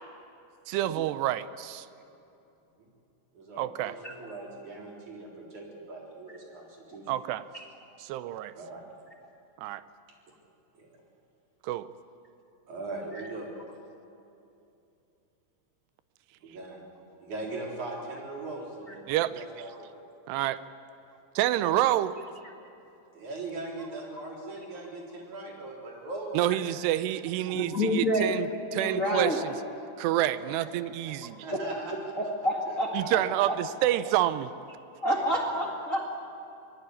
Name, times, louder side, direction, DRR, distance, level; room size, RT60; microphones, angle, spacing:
voice 1, 0.7-1.9 3.6-3.9 7.1-7.4 8.0-8.5 9.6-9.8 11.6-11.9 19.1-19.4 20.3-20.6 21.4-22.1 26.3-29.5 30.0-31.5 32.9-34.5, right 13 dB, 80° right, 14 dB, 2.5 m, -28 dB
voice 2, 3.3-7.1 8.5-8.8 10.7-10.9 12.7-13.5 16.4-16.8 17.2-20.0 21.5-21.8 23.1-26.4 30.4-30.7 31.1-32.1 32.7-33.5 35.1-35.2, right 2 dB, 40° right, -1 dB, 5.0 m, -40 dB
voice 3, 27.5-28.3 28.7-29.4 31.5-31.6 32.2-32.9 33.5-33.6 35.0-36.1, equal, 45° left, -1 dB, 1.0 m, -28 dB
25.0 x 19.5 x 9.8 m, 2.7 s
omnidirectional pair, 5.4 m